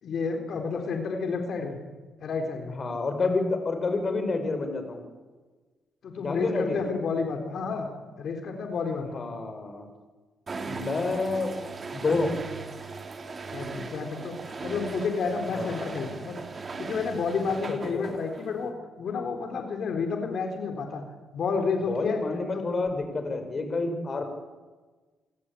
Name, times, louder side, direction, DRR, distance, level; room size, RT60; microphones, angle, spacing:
voice 1, 0.0-1.8 2.2-2.8 6.0-7.9 8.2-9.3 13.5-14.3 14.6-21.0 21.3-22.2 22.5-22.7, left 4 dB, 60° left, 4 dB, 3.9 m, -30 dB
voice 2, 2.8-5.0 6.2-6.8 9.1-9.9 10.7-11.6 11.9-12.3 15.5-15.9 17.7-18.1 21.8-24.2, left 3 dB, 40° left, 7 dB, 5.3 m, -29 dB
sound 1, 10.5-18.7, right 4 dB, 35° right, 2.7 m, -38 dB
29.0 x 17.5 x 8.6 m, 1.3 s
cardioid pair, 90°, 0 cm